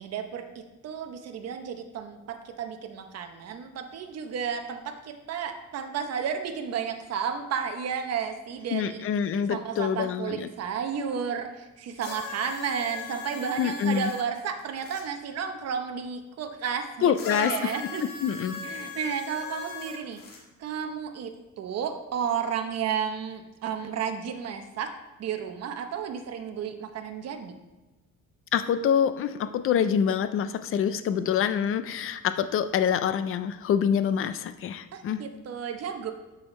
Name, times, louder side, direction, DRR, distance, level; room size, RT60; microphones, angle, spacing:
voice 1, 0.0-9.0 9.5-18.0 18.6-24.9 25.2-27.5 34.9-36.1, right 7 dB, 50° right, 6 dB, 0.9 m, -32 dB
voice 2, 8.7-10.5 13.6-14.1 17.0-17.5 18.2-18.5 28.5-35.2, left 8 dB, 40° left, 12 dB, 0.4 m, -26 dB
sound 1, 12.0-15.0 17.1-20.4 21.3-21.4, left 5 dB, 75° left, 1.6 m, -39 dB
12.5 x 5.0 x 3.2 m, 1.1 s
cardioid pair, 160°, 34 cm